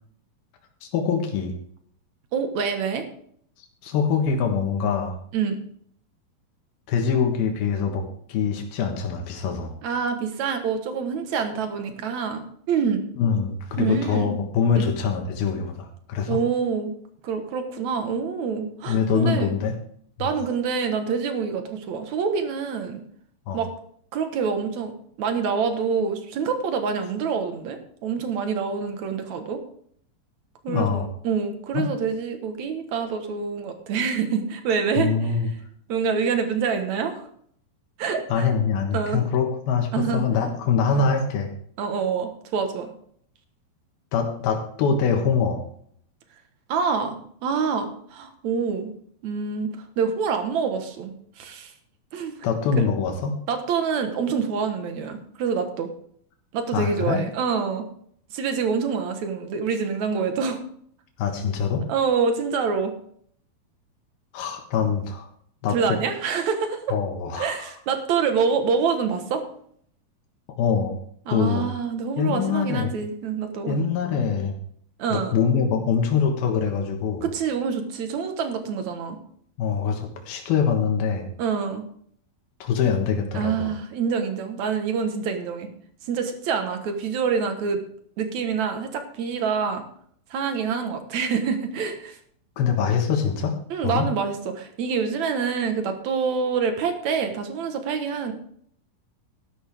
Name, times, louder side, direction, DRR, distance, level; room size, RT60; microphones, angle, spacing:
voice 1, 0.8-1.5 3.8-5.2 6.9-8.0 8.3-9.7 13.2-16.4 18.9-19.7 20.2-20.3 23.5-23.6 30.7-31.1 31.7-31.9 35.0-35.5 38.3-41.5 44.1-45.6 52.4-53.4 56.7-57.2 61.2-61.8 64.3-65.3 65.6-66.0 66.9-67.5 70.6-71.0 71.3-71.7 72.2-72.9 73.7-74.6 75.1-77.3 79.6-81.3 82.6-83.7 92.6-93.6 93.8-94.1, left 6 dB, 90° left, 3 dB, 3.4 m, -24 dB
voice 2, 2.3-3.1 5.3-5.6 9.8-13.0 13.8-14.4 14.8-14.9 16.3-16.9 17.2-19.5 20.2-23.0 23.5-23.7 24.1-24.9 25.2-29.6 30.6-35.3 35.9-37.3 38.0-38.5 38.9-39.3 39.9-40.3 40.9-41.0 41.8-42.9 46.7-48.9 49.2-51.7 52.1-52.3 52.8-52.9 53.5-55.9 56.5-57.9 58.3-60.6 61.9-62.9 65.7-67.0 67.4-69.4 71.3-73.8 75.0-75.4 77.2-79.2 81.4-81.8 83.3-85.7 86.0-87.8 88.2-89.8 90.3-92.2 93.7-98.3, right 6 dB, 60° right, 6 dB, 2.4 m, -26 dB
12.5 x 12.0 x 3.5 m, 0.63 s
omnidirectional pair, 4.2 m